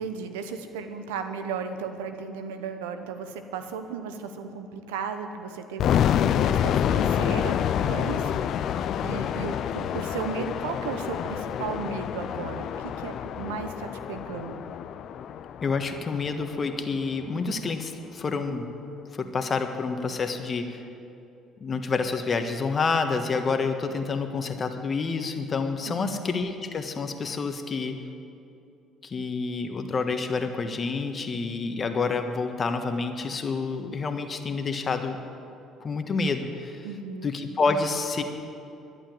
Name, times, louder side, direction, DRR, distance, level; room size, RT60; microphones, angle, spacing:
voice 1, 0.0-8.7 9.0-14.6 25.9-26.2 36.8-37.3, right 5 dB, 85° right, 8 dB, 0.9 m, -35 dB
sound 1, 5.8-16.7, left 9 dB, 60° left, 0.5 m, -27 dB
voice 2, 15.6-18.6 19.1-20.8 21.6-28.0 29.0-35.2 35.8-36.9 37.2-38.2, left 4 dB, 40° left, 6 dB, 1.4 m, -28 dB
12.0 x 11.0 x 7.8 m, 2.7 s
hypercardioid pair, 60°, 0 cm